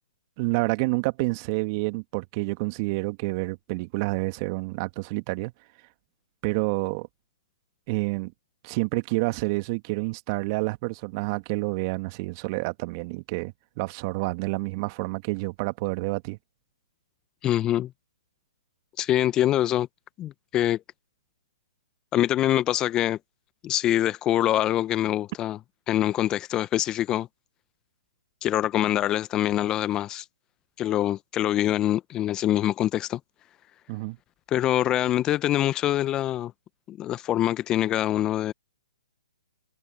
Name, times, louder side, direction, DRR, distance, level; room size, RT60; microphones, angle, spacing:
voice 1, 0.4-5.5 6.4-7.1 7.9-8.3 8.6-16.4 33.9-34.2, right 26 dB, 35° right, 1.9 m, -28 dB
voice 2, 17.4-17.9 19.0-19.9 20.2-20.8 22.1-23.2 23.6-25.6 25.9-27.3 28.4-30.2 30.8-33.2 34.5-36.5 36.9-38.5, left 13 dB, 20° left, 1.0 m, -24 dB
figure-of-eight pair, 130°, 3 cm